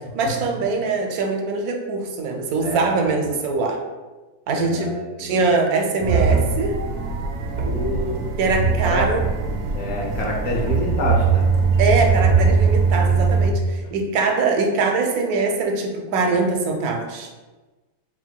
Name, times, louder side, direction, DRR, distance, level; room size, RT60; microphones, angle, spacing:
voice 1, 0.1-3.8 4.5-4.9 5.2-6.7 8.4-9.2 11.8-17.3, right 3 dB, 80° right, 3 dB, 1.1 m, -22 dB
voice 2, 2.6-3.1 4.5-5.5 7.6-8.2 8.8-9.1 9.7-11.5, left 1 dB, 70° left, -1 dB, 1.3 m, -27 dB
sound 1, 6.0-13.5, right 5 dB, 65° right, 0.7 m, -20 dB
4.1 x 2.1 x 4.5 m, 1.2 s
omnidirectional pair, 1.6 m